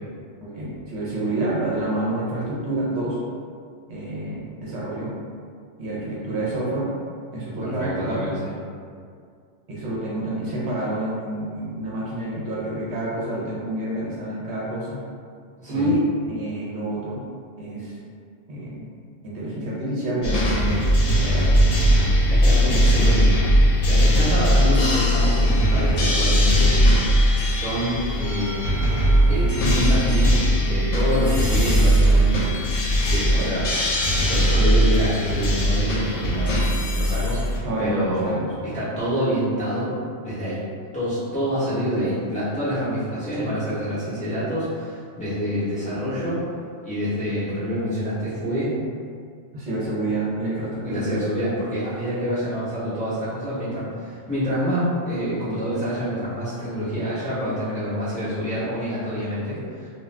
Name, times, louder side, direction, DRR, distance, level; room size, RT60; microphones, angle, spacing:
voice 1, 0.4-3.2 3.9-5.1 5.8-6.9 7.3-8.4 9.7-15.0 15.7-17.2 17.6-18.0 18.5-18.9 19.2-21.6 22.6-22.8 33.3-33.5 37.6-38.5 49.5-51.1, right 1 dB, 65° right, -6 dB, 0.9 m, -28 dB
voice 2, 7.6-8.5 15.6-15.9 22.3-23.4 23.8-26.8 27.4-28.6 29.3-32.5 33.1-33.6 34.2-36.6 36.9-39.9 40.2-40.6 40.9-46.4 46.8-48.7 50.8-59.9, equal, 5° left, -13 dB, 0.7 m, -27 dB
sound 1, 20.2-37.6, equal, 70° left, 0.9 m, -19 dB
2.4 x 2.3 x 3.2 m, 2.2 s
omnidirectional pair, 1.3 m